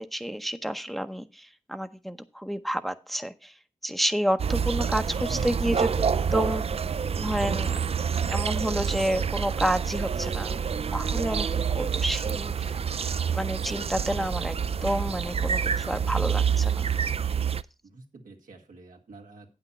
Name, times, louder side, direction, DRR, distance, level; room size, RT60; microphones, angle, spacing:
voice 1, 0.0-3.5 3.8-6.6 7.2-7.7 8.3-10.5 10.9-12.8 13.3-16.9, equal, ahead, 10 dB, 0.7 m, -30 dB
sound 1, 4.4-17.6, right 7 dB, 50° right, 0.4 m, -27 dB
voice 2, 5.3-5.7 10.1-10.5 17.8-19.6, right 3 dB, 90° right, 1 dB, 1.8 m, -46 dB
8.6 x 6.2 x 5.4 m, 0.31 s
cardioid pair, 55°, 14 cm